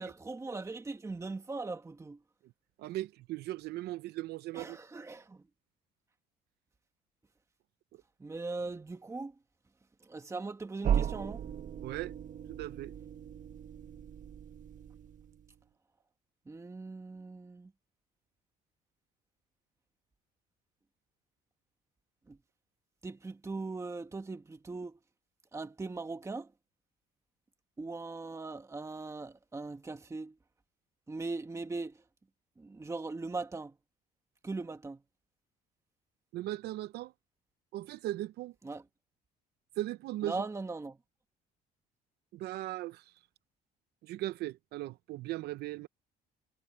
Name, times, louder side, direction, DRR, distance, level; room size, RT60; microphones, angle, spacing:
voice 1, 0.0-2.2 4.5-5.4 8.2-9.4 10.0-11.5 16.5-17.7 22.3-22.4 23.0-25.0 25.5-26.5 27.8-30.4 31.1-32.0 32.6-33.8 34.4-35.0 38.6-38.8 40.2-41.0, right 3 dB, 15° right, 1.6 m, -40 dB
voice 2, 2.8-4.8 11.8-12.1 12.5-12.9 36.3-37.1 37.7-38.5 39.8-40.3 42.3-43.1 44.0-45.9, right 15 dB, 75° right, 0.6 m, -38 dB
sound 1, 10.8-15.5, right 9 dB, 50° right, 1.1 m, -36 dB
cardioid pair, 110°, 17 cm